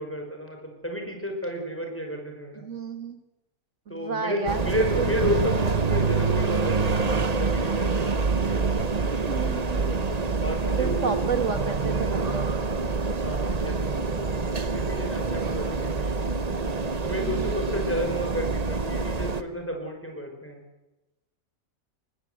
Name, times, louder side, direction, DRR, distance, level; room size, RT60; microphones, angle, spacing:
voice 1, 0.0-2.7 3.9-8.9 10.4-11.1 13.0-14.4 14.7-16.5 17.0-20.6, equal, 10° left, 3 dB, 5.2 m, -32 dB
voice 2, 2.6-3.2 3.9-4.7 5.0-5.1 9.3-10.0 10.8-12.5 17.2-17.5, right 5 dB, 60° right, 8 dB, 2.3 m, -31 dB
sound 1, 4.5-19.4, right 4 dB, 30° right, 1.1 m, -26 dB
23.5 x 21.0 x 8.1 m, 1.0 s
omnidirectional pair, 1.5 m